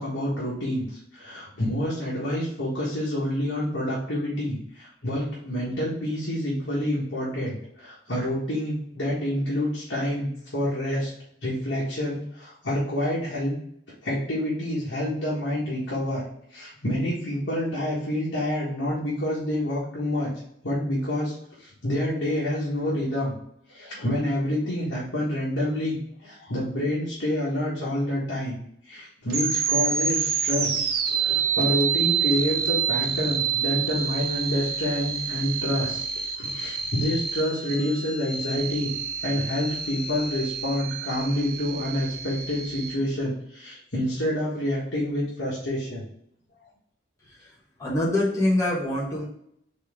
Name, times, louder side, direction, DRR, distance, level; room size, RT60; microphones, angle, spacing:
voice 1, 0.0-11.1 11.4-13.5 14.0-16.2 16.5-20.3 20.6-23.3 23.7-28.6 28.8-36.0 36.4-38.9 39.2-46.0, left 1 dB, 70° left, -7 dB, 1.4 m, -28 dB
sound 1, 29.3-42.9, right 7 dB, 55° right, 0.7 m, -28 dB
voice 2, 47.8-49.2, left 1 dB, 15° left, -5 dB, 1.3 m, -24 dB
4.4 x 3.1 x 3.5 m, 0.73 s
head